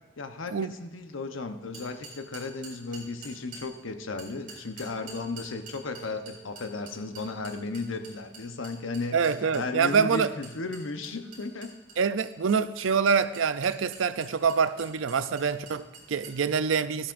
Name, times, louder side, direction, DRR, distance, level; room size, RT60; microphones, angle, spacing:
voice 1, 0.2-9.2 9.5-11.7, left 3 dB, 85° left, 0.9 m, -35 dB
sound 1, 1.7-3.6 4.2-16.4, right 4 dB, 40° right, 3.9 m, -46 dB
voice 2, 9.1-10.3 12.0-17.1, right 6 dB, 80° right, 0.5 m, -25 dB
16.0 x 13.0 x 2.6 m
head